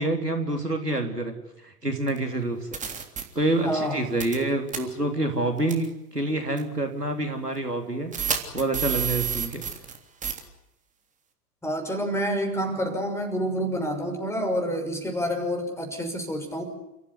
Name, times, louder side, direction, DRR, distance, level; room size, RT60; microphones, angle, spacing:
voice 1, 0.0-1.4 1.6-2.8 3.4-5.9 6.1-9.6, right 2 dB, 90° right, 4 dB, 3.5 m, -27 dB
sound 1, 2.1-2.2 2.7-3.2 4.2-4.4 4.7-4.8 5.7-5.9 6.6-6.7 8.1-10.0 10.2-10.4, right 8 dB, 15° right, 3.4 m, -29 dB
voice 2, 3.6-4.1 11.6-16.6, equal, 5° left, 5 dB, 6.1 m, -28 dB
30.0 x 15.0 x 10.0 m, 0.89 s
figure-of-eight pair, 95°, 46 cm